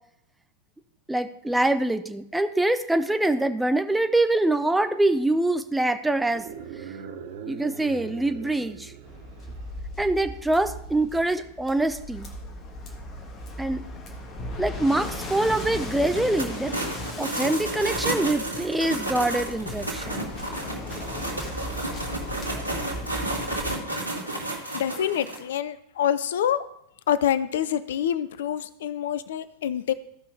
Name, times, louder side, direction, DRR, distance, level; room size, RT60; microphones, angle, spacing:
voice 1, 1.1-6.4 7.5-8.9 10.0-12.3 13.6-13.8 14.6-16.7 17.2-20.3, right 2 dB, 5° right, 8 dB, 0.6 m, -24 dB
sound 1, 6.2-9.8, right 7 dB, 55° right, 0.9 m, -40 dB
Waves surf, 9.0-23.8, left 1 dB, 30° left, 1.6 m, -37 dB
sound 2, 16.1-25.4, right 1 dB, 90° left, 1.7 m, -32 dB
voice 2, 24.7-26.7 27.1-29.9, left 10 dB, 60° left, 15 dB, 0.5 m, -26 dB
15.0 x 5.6 x 3.3 m, 0.74 s
figure-of-eight pair, 90°, 0 cm